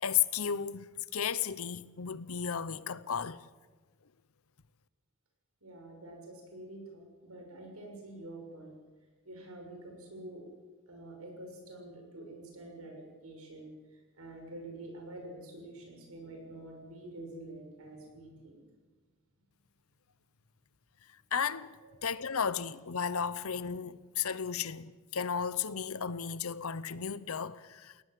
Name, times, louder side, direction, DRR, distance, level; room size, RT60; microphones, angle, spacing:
voice 1, 0.0-3.4 21.3-21.8 22.0-27.9, left 7 dB, 75° left, 0.8 m, -34 dB
voice 2, 5.6-8.8 9.2-10.4 10.9-18.6 21.8-21.9, right 1 dB, 80° right, 6.6 m, -47 dB
20.5 x 18.5 x 7.7 m
head